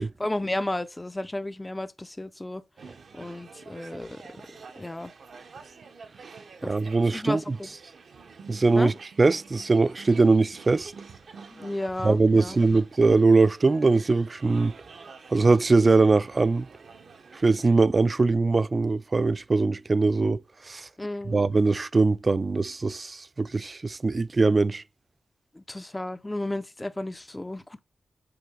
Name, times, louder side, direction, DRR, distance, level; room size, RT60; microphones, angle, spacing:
voice 1, 0.0-2.6 3.1-4.4 4.8-5.1 6.6-6.7 7.1-7.7 8.8-8.9 11.5-12.6 21.0-21.4 25.5-27.8, left 1 dB, 20° left, 0.5 m, -33 dB
sound 1, 2.8-17.8, right 5 dB, 75° right, 0.7 m, -48 dB
voice 2, 6.6-7.6 8.5-10.9 12.0-14.7 15.3-16.7 17.4-20.9 21.3-24.8, right 3 dB, 40° right, 0.3 m, -22 dB
6.8 x 3.8 x 3.6 m
cardioid pair, 65°, 0 cm